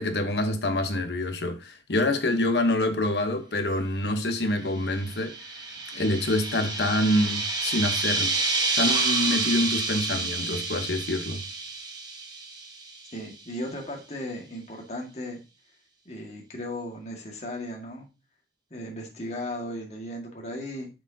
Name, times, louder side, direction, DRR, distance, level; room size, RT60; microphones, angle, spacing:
voice 1, 0.0-5.3 5.9-8.3 8.8-11.4, left 1 dB, 70° left, 1.1 m, -26 dB
sound 1, 4.8-13.1, right 3 dB, 25° right, 1.2 m, -29 dB
voice 2, 13.1-15.4 16.1-18.1 18.7-20.9, left 1 dB, 40° left, 1.8 m, -36 dB
7.6 x 6.3 x 2.8 m
head